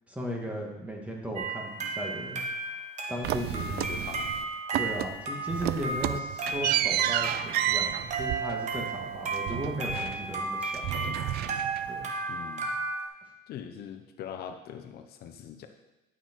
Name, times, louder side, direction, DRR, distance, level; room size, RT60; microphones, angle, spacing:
voice 1, 0.1-2.4 3.1-3.9 4.7-11.1 11.9-12.1, equal, 10° right, -1 dB, 2.2 m, -36 dB
sound 1, 1.4-13.1, right 3 dB, 45° right, 1.6 m, -34 dB
sound 2, 3.2-4.4 4.7-5.2 5.5-10.5 10.7-12.0, right 13 dB, 70° right, 0.4 m, -31 dB
voice 2, 3.8-4.3 12.3-12.8 13.5-15.7, left 8 dB, 70° left, 6 dB, 0.8 m, -42 dB
11.0 x 6.1 x 4.7 m, 1.0 s
cardioid pair, 110°, 17 cm